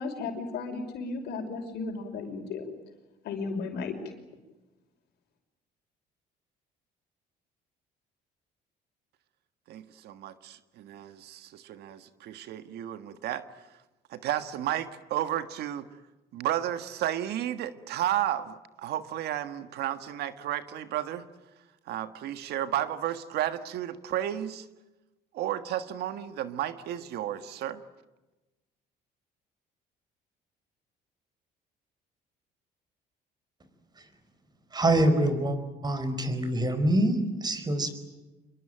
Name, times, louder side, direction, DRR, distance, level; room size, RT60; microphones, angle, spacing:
voice 1, 0.0-2.7 3.2-3.9, left 4 dB, 75° left, 5 dB, 5.6 m, -34 dB
voice 2, 9.7-13.5 14.1-15.9 16.3-21.2 21.9-24.7 25.3-27.8, right 12 dB, 75° right, 11 dB, 1.7 m, -32 dB
voice 3, 34.7-35.6 35.8-37.9, right 1 dB, 25° right, 10 dB, 4.8 m, -25 dB
27.0 x 22.5 x 9.0 m, 1.1 s
cardioid pair, 110°, 17 cm